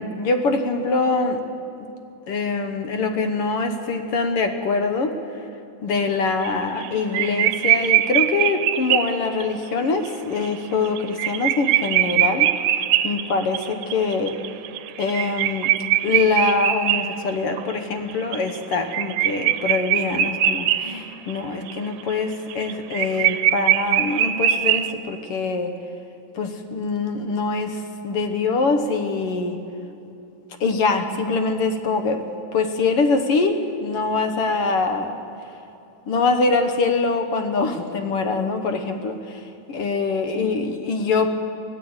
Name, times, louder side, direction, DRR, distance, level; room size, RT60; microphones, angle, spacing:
voice 1, 0.0-1.4 1.8-1.9 2.3-5.1 5.8-12.5 13.0-14.4 15.0-15.7 16.0-25.7 26.3-29.6 30.6-32.2 32.5-35.2 36.1-41.3, left 4 dB, 60° left, 6 dB, 1.7 m, -24 dB
sound 1, 6.4-6.9 7.1-9.4 10.1-10.2 10.4-10.5 10.9-17.7 18.1-21.0 21.3-21.4 21.7-24.9, right 12 dB, 80° right, 2.1 m, -22 dB
24.5 x 16.0 x 8.1 m, 2.9 s
omnidirectional pair, 3.6 m